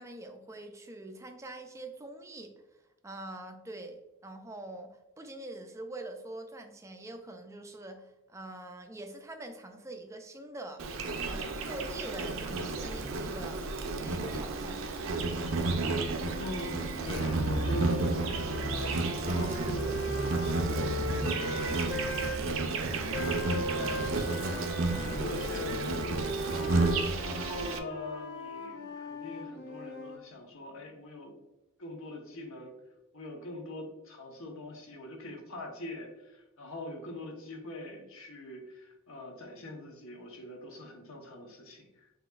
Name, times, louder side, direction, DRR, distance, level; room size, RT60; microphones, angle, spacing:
voice 1, 0.0-2.5 3.0-10.9 11.2-13.6 14.0-14.9, right 2 dB, 15° right, 5 dB, 0.3 m, -44 dB
Insect, 10.8-27.8, right 3 dB, 70° right, 0.5 m, -32 dB
sound 1, 16.1-22.4 23.1-30.2, left 1 dB, 55° left, 0.9 m, -38 dB
voice 2, 16.4-18.2 18.7-20.1 20.5-21.2 22.0-24.0 24.5-26.7 27.2-31.3 31.8-32.7 33.1-42.1, left 1 dB, 75° left, 2 dB, 1.0 m, -43 dB
5.9 x 2.9 x 2.4 m, 1.0 s
head